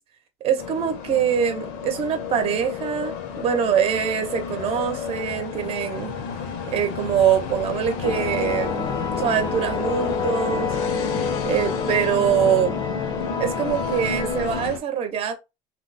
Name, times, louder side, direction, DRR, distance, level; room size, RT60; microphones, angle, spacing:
voice 1, 0.4-6.1 6.7-8.9 9.2-10.7 11.4-12.8 13.4-15.3, right 8 dB, 40° right, 0.7 m, -23 dB
sound 1, 0.6-14.8, left 6 dB, 85° left, 0.8 m, -32 dB
sound 2, 8.0-14.7, left 5 dB, 30° left, 0.5 m, -28 dB
3.0 x 2.0 x 3.9 m
cardioid pair, 140°, 15 cm